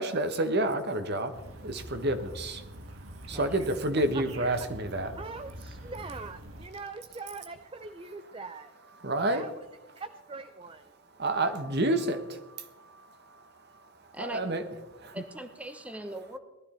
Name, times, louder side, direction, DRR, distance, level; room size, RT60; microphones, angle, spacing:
voice 1, 0.0-5.1 9.0-9.5 11.2-15.2, right 1 dB, 50° right, 9 dB, 1.2 m, -30 dB
sound 1, 1.3-6.7, equal, 75° right, 1.7 m, -45 dB
voice 2, 5.2-8.7 9.3-9.5 10.0-10.9, right 3 dB, 25° right, 10 dB, 0.5 m, -42 dB
voice 3, 15.1-16.4, right 1 dB, 5° right, 8 dB, 0.9 m, -40 dB
18.5 x 12.5 x 4.3 m, 1.0 s
head